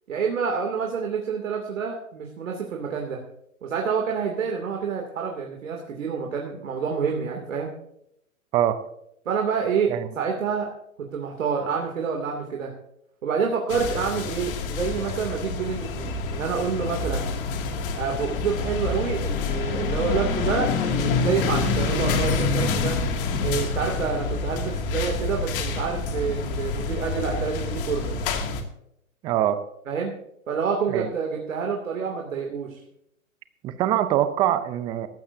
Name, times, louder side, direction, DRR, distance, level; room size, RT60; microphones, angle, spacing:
voice 1, 0.1-3.2 3.6-7.7 9.2-10.7 11.1-12.7 13.2-17.3 17.9-23.0 23.4-28.2 29.9-30.1 30.5-32.8, right 6 dB, 65° right, 1 dB, 2.8 m, -28 dB
sound 1, 13.7-28.6, left 4 dB, 40° left, 2.4 m, -27 dB
voice 2, 29.2-29.6 30.9-31.1 33.6-35.1, right 12 dB, 10° right, 12 dB, 0.5 m, -23 dB
18.0 x 15.0 x 2.7 m, 0.76 s
hypercardioid pair, 130°, 41 cm